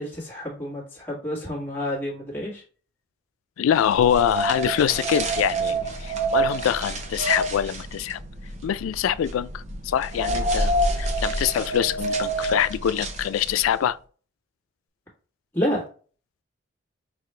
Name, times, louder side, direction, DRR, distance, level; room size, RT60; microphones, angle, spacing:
voice 1, 0.0-2.6 15.5-15.8, equal, 10° left, 1.6 m, -29 dB
voice 2, 3.6-8.2 8.6-14.0, left 9 dB, 90° left, 0.3 m, -24 dB
sound 1, 3.8-13.8, right 2 dB, 35° right, 0.6 m, -28 dB
5.8 x 2.4 x 3.2 m
head